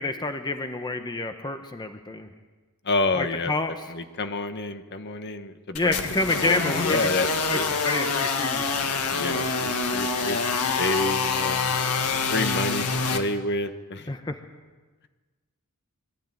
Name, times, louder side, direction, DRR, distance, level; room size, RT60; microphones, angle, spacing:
voice 1, 0.0-2.3 3.2-3.7 5.7-7.1 7.5-8.7 14.1-14.4, left 2 dB, 20° left, 7 dB, 0.9 m, -28 dB
voice 2, 2.8-3.5 3.9-6.0 6.4-7.3 7.5-7.7 9.1-11.7 12.3-12.9 13.1-14.1, left 2 dB, 50° left, 8 dB, 1.3 m, -29 dB
sound 1, 5.8-13.2, left 4 dB, 85° left, 1.8 m, -26 dB
23.5 x 13.0 x 9.1 m, 1.3 s
head